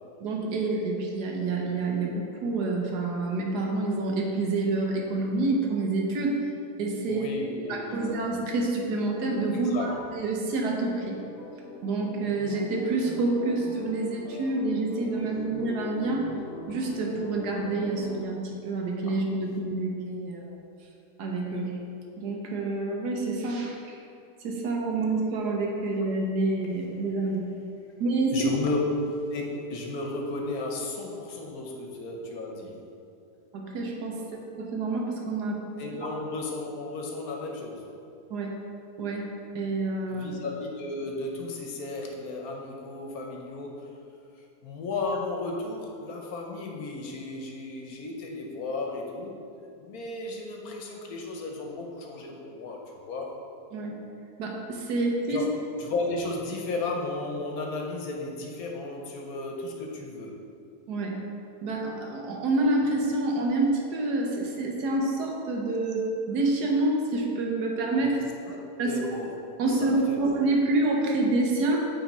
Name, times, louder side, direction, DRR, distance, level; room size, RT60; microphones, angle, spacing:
voice 1, 0.2-6.4 6.8-7.3 7.7-11.2 11.8-16.3 16.7-20.6 21.2-21.8 22.2-24.0 24.4-27.5 28.0-28.5 33.5-34.2 34.6-35.6 38.3-38.5 39.0-39.3 39.5-40.3 53.7-53.9 54.4-55.4 60.9-61.2 61.6-68.2 68.8-69.1 69.6-71.9, right 2 dB, 75° right, 0 dB, 1.4 m, -27 dB
voice 2, 7.1-8.1 9.5-9.9 28.3-28.8 29.3-32.7 35.8-37.8 40.1-43.9 44.6-49.3 49.8-52.8 53.1-53.3 55.3-55.5 55.8-60.4 68.0-68.1 68.5-68.6 68.8-69.4 69.8-70.2, left 2 dB, 65° left, 0 dB, 1.2 m, -34 dB
sound 1, 11.0-18.2, left 1 dB, 50° left, 0.8 m, -42 dB
8.6 x 3.6 x 4.2 m, 2.6 s
omnidirectional pair, 1.7 m